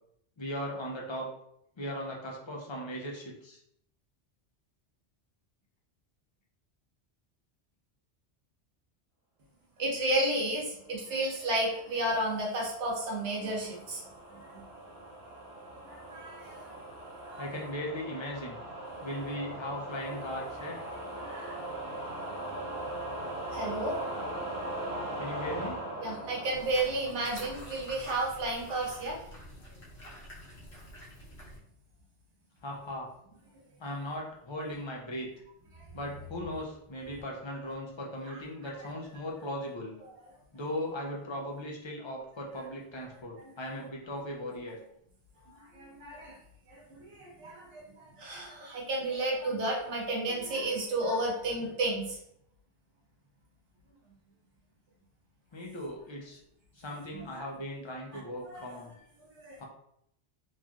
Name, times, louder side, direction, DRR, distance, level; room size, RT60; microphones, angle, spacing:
voice 1, 0.4-1.3 1.8-3.6 17.4-18.6 19.0-20.8 25.2-25.8 32.6-33.1 33.8-35.3 35.9-39.9 40.5-44.8 55.5-56.4 56.7-58.9 59.6-59.7, left 1 dB, 40° left, -1 dB, 0.4 m, -38 dB
voice 2, 9.8-14.0 14.3-14.6 15.8-16.7 17.2-17.5 21.2-21.6 23.5-24.0 26.0-29.2 35.7-35.8 38.3-38.4 45.6-46.4 46.7-52.2 57.1-57.4 58.1-58.6 59.4-59.6, right 1 dB, 90° right, -2 dB, 1.2 m, -32 dB
sound 1, 11.5-27.9, right 1 dB, 70° right, 0.9 m, -40 dB
sound 2, 26.5-31.6, equal, 70° left, 1.1 m, -47 dB
3.1 x 2.6 x 2.3 m, 0.72 s
omnidirectional pair, 1.1 m